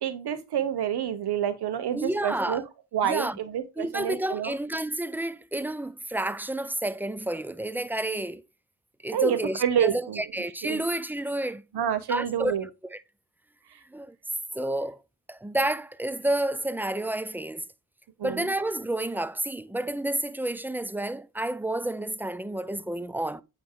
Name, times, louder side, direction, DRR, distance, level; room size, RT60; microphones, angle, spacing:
voice 1, 0.0-2.6 2.9-4.6 9.1-10.2 10.6-10.8 11.7-12.6 18.2-18.5, right 9 dB, 60° right, 1.1 m, -28 dB
voice 2, 1.9-2.6 3.0-3.4 3.8-8.4 9.0-11.6 12.1-12.5 12.9-13.0 13.9-14.2 14.5-15.0 15.3-17.6 18.2-23.4, right 1 dB, 5° right, 0.3 m, -30 dB
8.4 x 3.0 x 3.7 m
supercardioid pair, 50°, 44 cm